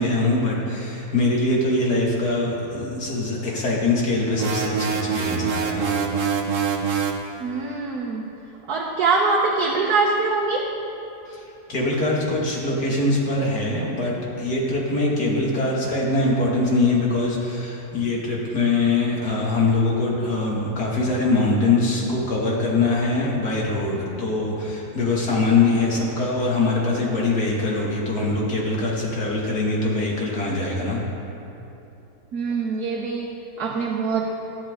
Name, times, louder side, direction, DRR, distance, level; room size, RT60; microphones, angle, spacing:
voice 1, 0.0-5.9 11.3-11.4 11.7-31.0, left 2 dB, 80° left, -4 dB, 2.9 m, -23 dB
sound 1, 4.4-7.2, right 6 dB, 55° right, 1.3 m, -24 dB
voice 2, 7.4-8.3 8.7-10.6 32.3-33.3 33.6-34.3, right 4 dB, 75° right, -2 dB, 1.6 m, -23 dB
19.0 x 12.0 x 3.8 m, 2.9 s
omnidirectional pair, 1.7 m